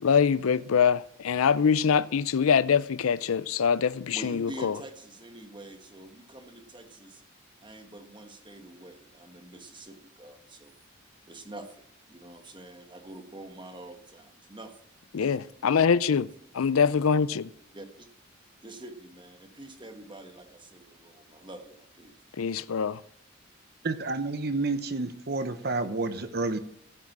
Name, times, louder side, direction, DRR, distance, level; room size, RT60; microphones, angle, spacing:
voice 1, 0.0-4.8 15.1-16.3 16.5-17.5 22.4-23.0, left 6 dB, 90° left, 0.5 m, -24 dB
voice 2, 4.1-7.2 7.6-10.7 11.3-14.7 15.1-15.3 16.7-16.8 17.7-18.1 18.6-22.1, right 1 dB, 20° right, 1.3 m, -46 dB
voice 3, 23.8-26.6, right 3 dB, 50° right, 0.9 m, -30 dB
15.5 x 6.1 x 7.3 m
head